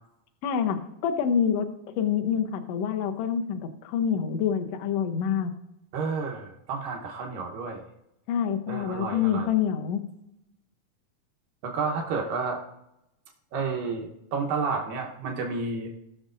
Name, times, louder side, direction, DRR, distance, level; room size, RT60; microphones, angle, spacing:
voice 1, 0.4-5.5 8.3-10.0, left 8 dB, 90° left, 6 dB, 1.3 m, -27 dB
voice 2, 5.9-7.8 8.7-9.5 11.6-12.6 13.5-15.9, right 4 dB, 80° right, 1 dB, 2.7 m, -31 dB
19.5 x 6.6 x 2.5 m, 0.84 s
omnidirectional pair, 4.0 m